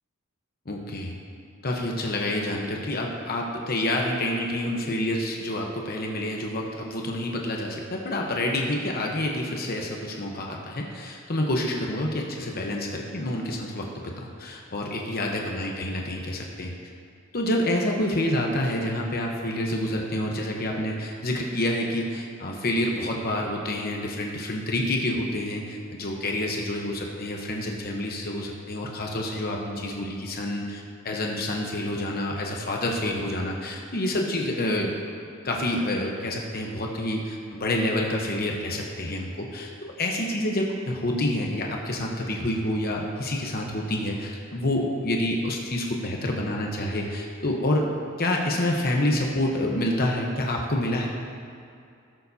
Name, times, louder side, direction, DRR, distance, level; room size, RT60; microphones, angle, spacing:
voice 1, 0.7-1.2 1.6-16.7 17.3-34.9 35.2-47.9 48.2-51.1, left 1 dB, 50° left, 0 dB, 0.9 m, -28 dB
17.5 x 7.0 x 2.7 m, 2.5 s
head